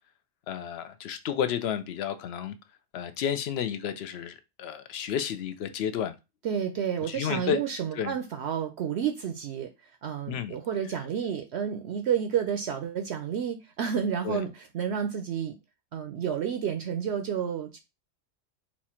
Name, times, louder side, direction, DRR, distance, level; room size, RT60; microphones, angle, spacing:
voice 1, 0.5-2.6 2.9-6.1 7.1-7.6 7.9-8.2 10.3-10.6 14.2-14.4, left 8 dB, 65° left, 0.7 m, -31 dB
voice 2, 6.4-9.7 10.0-15.5 15.9-17.8, right 8 dB, 65° right, 0.8 m, -30 dB
4.3 x 2.4 x 4.2 m
omnidirectional pair, 1.3 m